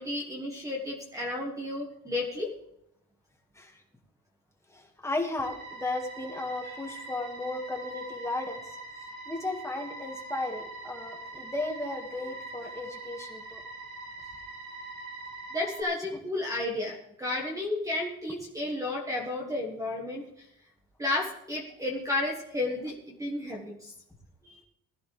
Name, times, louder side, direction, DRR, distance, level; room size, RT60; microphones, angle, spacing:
voice 1, 0.0-2.5 15.5-20.5 21.0-23.9 24.4-24.6, left 2 dB, 10° right, 0 dB, 1.4 m, -32 dB
voice 2, 4.7-8.8 9.3-13.6 16.1-16.2, left 2 dB, 10° left, 2 dB, 1.8 m, -35 dB
sound 1, 5.4-15.8, right 3 dB, 50° right, 4.6 m, -43 dB
20.0 x 13.5 x 3.3 m, 0.78 s
cardioid pair, 175°, 36 cm